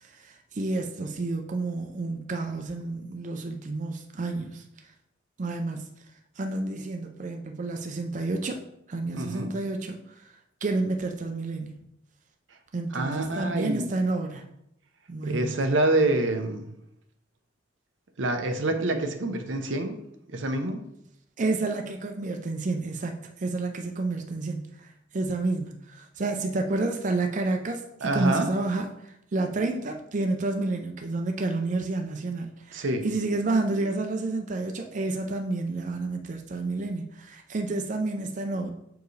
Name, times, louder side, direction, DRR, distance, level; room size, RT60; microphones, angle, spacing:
voice 1, 0.0-4.6 5.4-5.9 6.4-8.6 8.9-10.3 10.6-11.7 12.7-14.4 15.1-15.6 21.4-38.7, right 2 dB, 40° right, 4 dB, 0.5 m, -30 dB
voice 2, 9.1-9.5 12.9-13.9 15.2-16.7 18.2-20.0 20.3-20.8 28.0-28.5 32.7-33.0, right 2 dB, 80° right, 6 dB, 0.7 m, -26 dB
6.7 x 4.6 x 3.2 m, 0.79 s
head